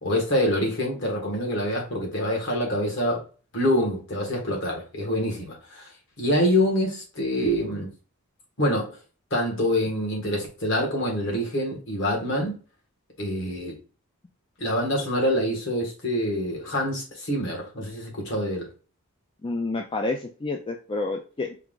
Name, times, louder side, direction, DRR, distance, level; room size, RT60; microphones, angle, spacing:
voice 1, 0.0-3.2 3.5-5.9 6.2-7.9 8.6-9.0 9.3-12.5 13.2-13.8 14.6-18.7, equal, 55° left, -1 dB, 1.6 m, -26 dB
voice 2, 19.4-21.6, left 2 dB, 25° left, 3 dB, 0.3 m, -29 dB
4.5 x 2.4 x 3.7 m, 0.36 s
head